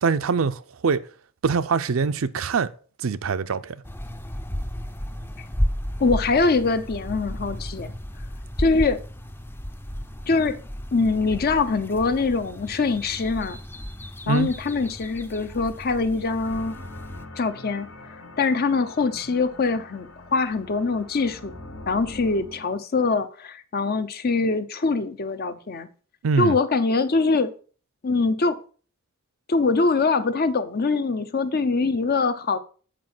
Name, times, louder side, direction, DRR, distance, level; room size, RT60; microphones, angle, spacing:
voice 1, 0.0-1.0 1.4-2.7 3.0-3.8 14.3-14.5 26.2-26.6, right 5 dB, 80° right, 0.5 m, -23 dB
sound 1, 3.8-17.3, equal, 10° left, 0.5 m, -33 dB
voice 2, 6.0-7.9 8.6-9.0 10.3-10.6 10.9-13.6 14.3-16.7 17.4-21.5 21.9-25.9 26.4-27.5 28.0-28.6 29.5-32.6, left 4 dB, 50° left, 0.7 m, -23 dB
sound 2, 16.4-22.7, left 2 dB, 80° left, 1.3 m, -43 dB
7.6 x 4.7 x 6.0 m
head